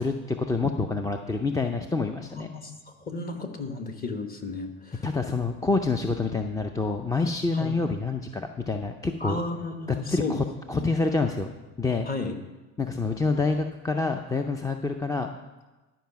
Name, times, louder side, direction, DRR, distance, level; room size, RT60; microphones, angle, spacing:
voice 1, 0.0-2.5 5.0-9.4 10.1-11.5 11.8-12.1 12.8-15.4, left 3 dB, 10° left, 5 dB, 0.4 m, -27 dB
voice 2, 2.2-2.7 3.1-5.0 7.5-7.7 9.2-10.4 10.8-10.9 12.1-12.4, left 3 dB, 30° left, 5 dB, 1.2 m, -33 dB
11.5 x 5.0 x 5.8 m, 1.2 s
supercardioid pair, 100°, 32 cm